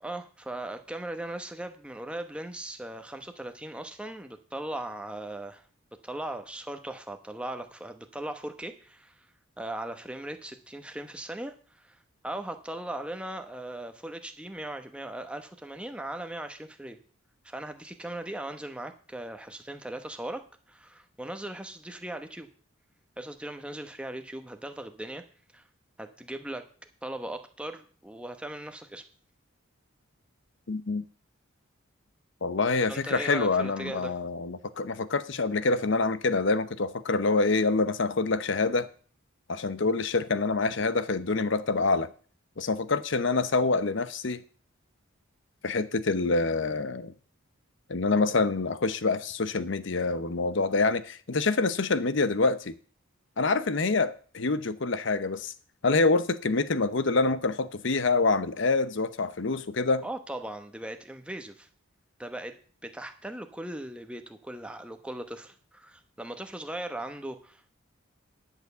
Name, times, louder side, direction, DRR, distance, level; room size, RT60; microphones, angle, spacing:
voice 1, 0.0-5.6 5.9-9.3 9.6-17.0 17.4-22.5 23.2-25.2 25.5-25.6 26.0-26.6 27.0-29.0 32.9-34.2 60.0-61.7 62.2-67.7, right 1 dB, 5° right, 1.0 m, -38 dB
voice 2, 30.7-31.0 32.4-38.9 39.5-42.1 42.6-44.4 45.6-47.1 47.9-52.7 53.4-55.5 55.8-60.0, left 3 dB, 60° left, 0.7 m, -26 dB
10.5 x 7.0 x 6.7 m
head